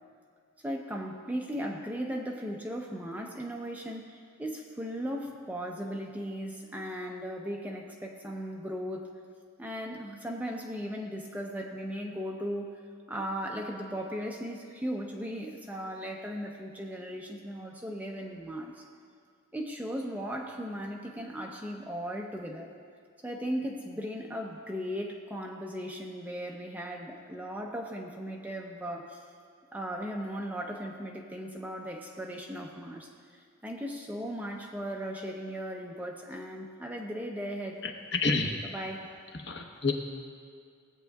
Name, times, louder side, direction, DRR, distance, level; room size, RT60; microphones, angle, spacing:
voice 1, 0.6-9.1 9.6-12.8 13.1-18.8 19.5-22.7 23.2-29.2 29.7-37.8 38.7-39.1, equal, 10° right, 0 dB, 0.6 m, -37 dB
voice 2, 37.8-38.5 39.3-39.9, left 3 dB, 55° left, 3 dB, 0.9 m, -29 dB
17.5 x 8.2 x 2.3 m, 2.2 s
head